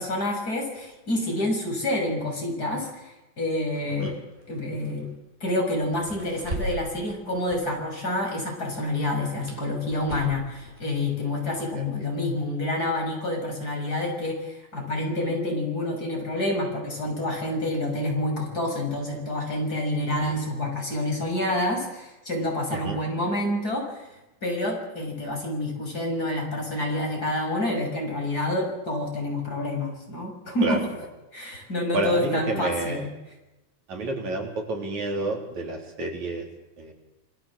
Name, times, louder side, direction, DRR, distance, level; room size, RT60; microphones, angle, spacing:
voice 1, 0.0-4.2 4.5-5.1 5.4-24.1 24.4-30.8 31.3-33.1, left 1 dB, 30° left, 1 dB, 7.1 m, -28 dB
sound 1, 3.7-8.3 8.6-12.1, right 1 dB, 20° right, 7.4 m, -40 dB
voice 2, 31.9-33.1 33.9-36.5 36.8-36.9, right 2 dB, 70° right, 2 dB, 5.2 m, -29 dB
28.5 x 20.0 x 7.6 m, 0.97 s
omnidirectional pair, 3.4 m